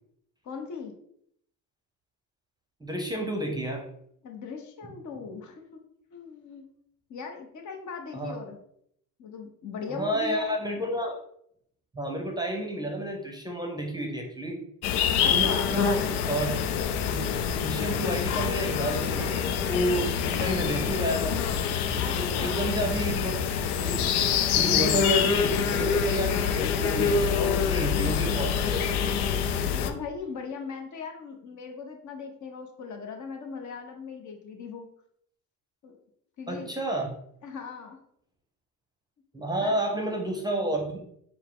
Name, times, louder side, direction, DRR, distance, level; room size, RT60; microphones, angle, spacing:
voice 1, 0.4-0.9 4.2-5.8 6.1-6.7 7.1-8.6 9.2-10.6 15.2-15.7 22.0-22.9 29.6-34.9 35.8-36.0 36.4-36.7 37.4-38.0 39.6-39.8, left 5 dB, 45° left, 3 dB, 1.0 m, -39 dB
voice 2, 2.8-3.9 8.1-8.3 9.9-11.1 11.9-14.6 15.3-16.5 17.0-17.2 17.6-21.4 22.2-23.4 23.8-24.0 24.5-29.2 36.5-37.1 39.3-41.0, right 1 dB, 10° right, 2 dB, 0.8 m, -31 dB
sound 1, 14.8-29.9, left 7 dB, 85° left, 0.6 m, -26 dB
4.5 x 2.2 x 3.8 m, 0.70 s
hypercardioid pair, 75°, 42 cm